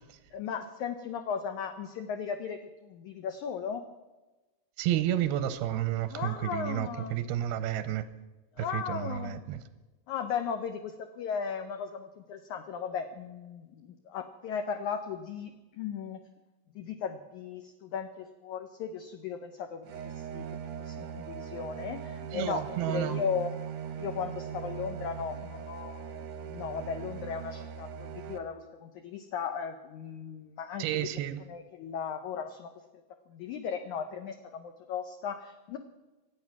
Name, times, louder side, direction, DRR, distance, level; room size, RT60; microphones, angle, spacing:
voice 1, 0.3-3.8 6.1-7.2 8.6-9.4 10.1-16.2 16.8-20.5 20.8-23.6 24.0-31.1 31.5-32.7 33.3-35.8, left 7 dB, 75° left, 1.8 m, -36 dB
voice 2, 4.8-8.1 8.6-9.6 22.3-23.2 30.8-31.4, right 12 dB, 90° right, 2.6 m, -31 dB
sound 1, 19.8-28.4, right 8 dB, 75° right, 1.6 m, -40 dB
24.0 x 8.7 x 6.0 m
omnidirectional pair, 4.4 m